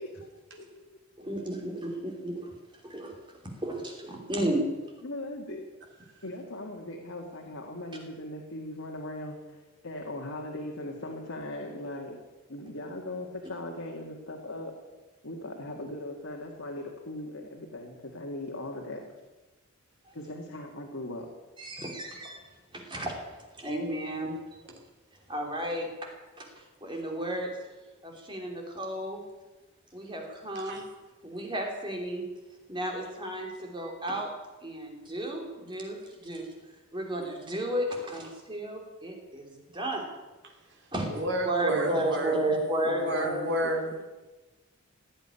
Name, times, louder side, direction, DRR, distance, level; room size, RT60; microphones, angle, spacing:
voice 1, 0.0-1.0 5.0-5.7 6.2-12.2 12.5-14.8 15.2-19.0 20.1-21.3 41.7-42.1 42.3-43.9, left 1 dB, 75° left, 1 dB, 2.0 m, -39 dB
voice 2, 1.2-2.5 2.8-3.1 3.6-4.7 20.1-20.2 21.6-22.4 22.7-23.1 23.5-24.3 25.3-25.9 26.4-27.5 28.0-29.2 29.9-30.8 31.2-32.2 32.7-34.3 34.6-36.5 36.9-40.1 40.9-41.1 41.4-43.4, right 1 dB, 20° right, 1 dB, 3.0 m, -33 dB
voice 3, 41.1-42.3 43.0-43.8, right 1 dB, 55° right, 1 dB, 3.2 m, -30 dB
16.5 x 8.7 x 10.0 m, 1.2 s
head